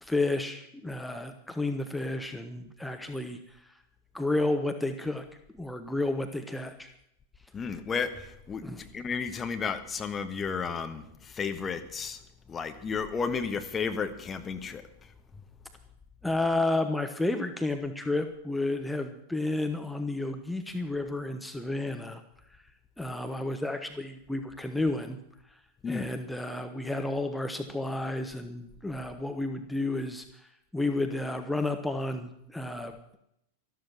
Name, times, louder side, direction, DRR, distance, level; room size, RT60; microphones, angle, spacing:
voice 1, 0.0-3.6 4.1-5.2 5.5-6.9 8.6-8.9 16.2-22.2 23.0-25.2 25.9-32.9, left 2 dB, 5° left, 6 dB, 1.1 m, -31 dB
voice 2, 7.5-12.2 12.5-14.8 25.8-26.1, left 5 dB, 20° left, 7 dB, 1.3 m, -33 dB
13.0 x 13.0 x 6.3 m, 0.76 s
figure-of-eight pair, 90°, 0 cm